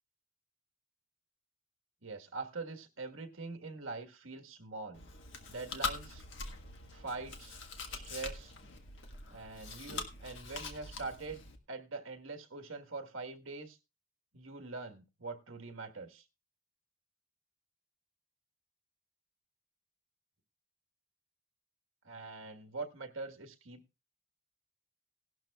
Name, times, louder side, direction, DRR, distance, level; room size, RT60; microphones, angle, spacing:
voice 1, 2.0-5.0 5.5-6.2 6.9-7.5 7.9-8.5 9.3-13.8 14.3-16.2 22.0-23.8, right 3 dB, 70° right, 1.5 m, -43 dB
Chewing mastication, 4.9-11.6, left 4 dB, 60° left, 1.6 m, -43 dB
17.5 x 12.0 x 2.4 m
head